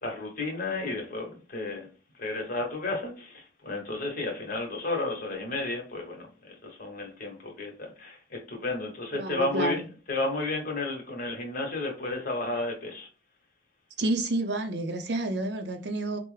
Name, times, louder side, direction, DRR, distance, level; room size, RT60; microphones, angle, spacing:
voice 1, 0.0-1.9 2.2-9.8 10.1-13.1, left 2 dB, 50° left, 1.0 m, -32 dB
voice 2, 9.1-9.8 14.0-16.2, right 2 dB, 60° right, 0.5 m, -29 dB
4.5 x 2.0 x 3.2 m
head